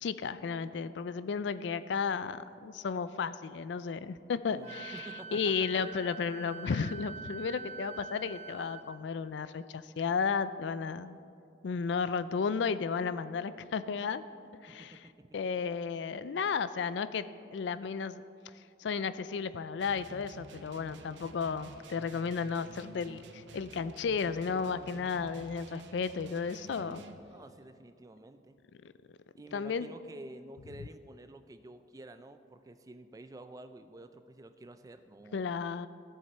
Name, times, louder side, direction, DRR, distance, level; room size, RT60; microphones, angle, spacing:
voice 1, 0.0-11.2 11.6-14.2 14.6-15.1 15.3-17.3 17.5-18.2 18.5-27.0 28.8-28.9 29.5-29.9 35.3-35.9, left 5 dB, 70° left, 14 dB, 0.4 m, -33 dB
voice 2, 4.5-5.4 14.7-15.3 27.3-28.6 29.4-35.6, right 2 dB, 20° right, 10 dB, 0.3 m, -50 dB
Wind instrument woodwind instrument, 4.6-8.8, right 6 dB, 35° right, 1.1 m, -45 dB
sound 1, 19.8-27.2, right 2 dB, 75° right, 0.7 m, -51 dB
14.5 x 7.2 x 4.3 m, 2.5 s
head